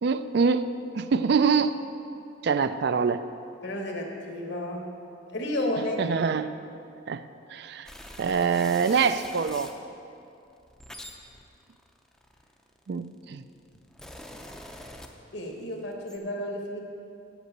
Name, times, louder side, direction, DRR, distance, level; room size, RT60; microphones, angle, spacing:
voice 1, 0.0-0.7 0.9-1.8 2.4-3.2 6.0-6.5 7.1-7.2 7.5-7.9 8.2-9.7 12.9-13.4, right 5 dB, 55° right, 12 dB, 0.3 m, -24 dB
voice 2, 3.6-4.9 5.3-6.0 15.3-16.8, left 1 dB, 60° left, 1 dB, 1.4 m, -32 dB
sound 1, 7.9-9.8 10.5-12.9 13.6-15.6 15.9-16.2, left 1 dB, 5° left, 0.5 m, -45 dB
8.1 x 6.2 x 8.0 m, 2.6 s
head